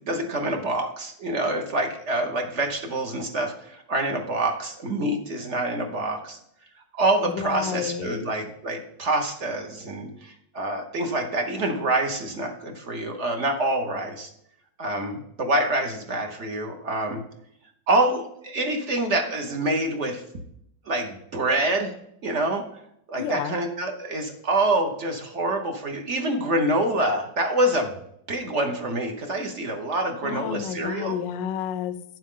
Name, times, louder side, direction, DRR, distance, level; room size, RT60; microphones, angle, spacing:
voice 1, 0.1-6.4 7.0-14.3 14.8-17.2 17.9-20.2 20.9-21.9 22.2-22.6 23.1-27.9 28.3-31.1, right 1 dB, 50° right, 3 dB, 1.1 m, -26 dB
voice 2, 7.3-8.3 23.2-23.6 30.2-32.2, left 8 dB, 85° left, 14 dB, 1.2 m, -31 dB
9.5 x 7.4 x 3.7 m, 0.74 s
omnidirectional pair, 1.9 m